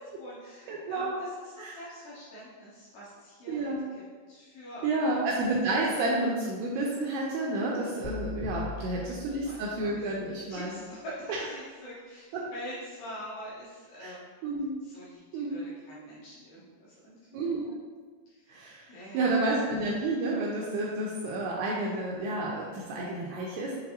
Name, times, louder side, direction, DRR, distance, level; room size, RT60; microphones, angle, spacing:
voice 1, 0.2-5.2 8.7-9.9 10.2-14.2 14.8-17.8 18.3-18.6 18.9-19.3, equal, 75° left, -8 dB, 2.4 m, -45 dB
voice 2, 0.7-1.2 1.6-1.7 3.5-3.8 4.8-10.8 11.3-11.4 12.3-12.4 14.0-14.1 14.4-14.8 15.3-15.6 17.3-17.7 18.5-18.9 19.1-23.8, right 2 dB, 85° right, -3 dB, 2.4 m, -30 dB
sound 1, 8.0-10.2, left 3 dB, 90° left, 3.0 m, -40 dB
6.7 x 2.6 x 2.8 m, 1.5 s
omnidirectional pair, 5.1 m